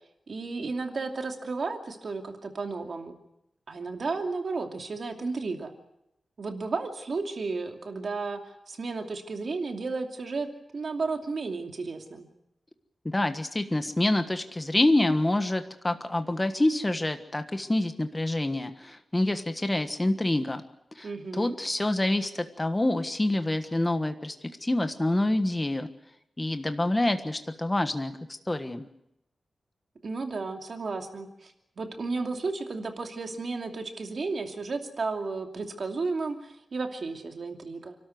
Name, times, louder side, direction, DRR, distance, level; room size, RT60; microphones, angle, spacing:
voice 1, 0.3-3.1 3.7-5.7 6.4-10.5 10.7-12.3 21.0-21.6 30.0-38.0, right 3 dB, 55° right, 4 dB, 2.7 m, -33 dB
voice 2, 13.0-20.6 21.0-21.1 21.3-24.3 24.6-25.9 26.4-28.1 28.5-28.9, left 1 dB, 15° left, 8 dB, 1.4 m, -27 dB
29.0 x 13.0 x 9.5 m, 0.83 s
wide cardioid pair, 130°, 0 cm